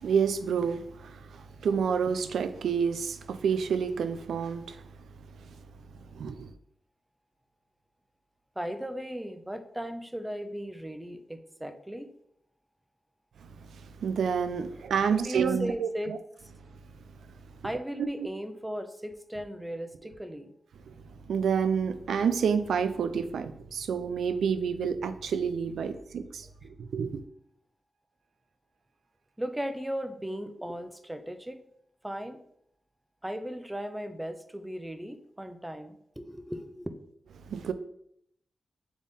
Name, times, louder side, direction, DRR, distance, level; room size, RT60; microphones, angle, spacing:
voice 1, 0.0-4.8 6.1-6.5 13.7-16.2 18.0-18.1 20.9-21.0 21.3-27.2 37.5-37.7, right 6 dB, 90° right, 0.3 m, -29 dB
voice 2, 8.6-12.1 14.7-14.8 15.1-16.1 17.6-20.5 26.1-26.2 26.4-26.5 29.4-31.6 32.0-32.4 33.2-36.9, equal, 10° right, 0.5 m, -37 dB
3.6 x 3.4 x 4.0 m
cardioid pair, 55°, 0 cm